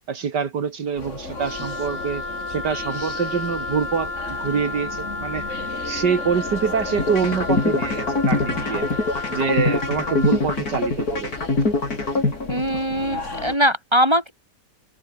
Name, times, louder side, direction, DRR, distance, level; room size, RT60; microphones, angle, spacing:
voice 1, 0.1-2.2 2.5-8.9 9.3-11.3, right 6 dB, 75° right, 2.5 m, -25 dB
sound 1, 1.0-13.6, left 2 dB, 45° left, 4.3 m, -36 dB
Wind instrument woodwind instrument, 1.3-10.4, left 3 dB, 75° left, 5.9 m, -32 dB
sound 2, 7.0-13.0, left 3 dB, 60° left, 5.2 m, -23 dB
voice 2, 12.5-14.3, equal, 15° right, 5.8 m, -21 dB
omnidirectional pair, 1.8 m